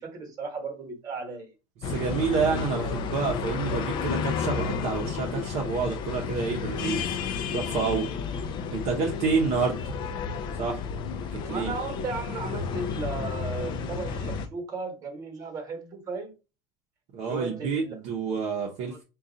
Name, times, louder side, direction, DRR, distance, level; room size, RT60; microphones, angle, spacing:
voice 1, 0.0-1.5 11.4-16.3 17.3-17.9 18.6-19.0, right 4 dB, 25° right, 1.1 m, -35 dB
sound 1, 1.8-14.5, left 6 dB, 35° left, 0.4 m, -32 dB
voice 2, 1.9-7.1 7.5-8.1 8.7-9.8 10.6-10.8 11.3-11.7 17.1-19.0, right 5 dB, 50° right, 0.7 m, -28 dB
3.8 x 2.3 x 3.8 m
cardioid pair, 180°, 14 cm